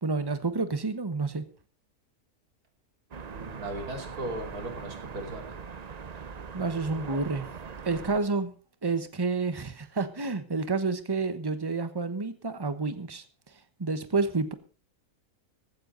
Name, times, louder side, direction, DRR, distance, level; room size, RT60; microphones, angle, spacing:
voice 1, 0.0-1.4 6.5-7.5 7.8-8.5 8.8-13.2 13.8-14.5, right 3 dB, 15° right, 11 dB, 1.0 m, -29 dB
sound 1, 3.1-8.2, right 6 dB, 45° right, 0.5 m, -41 dB
voice 2, 3.3-5.6, right 1 dB, 75° right, 5 dB, 3.4 m, -37 dB
15.5 x 13.5 x 3.9 m, 0.37 s
omnidirectional pair, 1.6 m